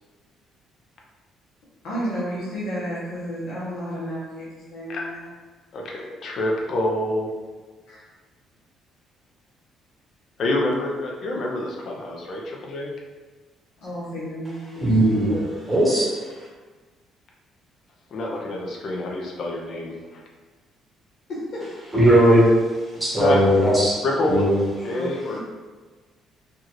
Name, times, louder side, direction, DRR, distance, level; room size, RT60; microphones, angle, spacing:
voice 1, 1.8-4.4 4.7-5.2 7.9-8.0 13.8-14.9 21.3-21.7 24.9-25.1 25.3-25.4, equal, 70° left, -9 dB, 1.1 m, -31 dB
voice 2, 5.7-7.3 10.4-12.9 18.1-20.2 23.2-23.4 24.0-24.4 24.8-25.4, left 1 dB, 45° left, -1 dB, 0.6 m, -27 dB
voice 3, 14.8-16.1 21.9-22.4 23.0-24.0 24.3-24.6, right 1 dB, 5° right, -6 dB, 1.0 m, -18 dB
4.6 x 2.5 x 3.0 m, 1.3 s
cardioid pair, 150°, 0 cm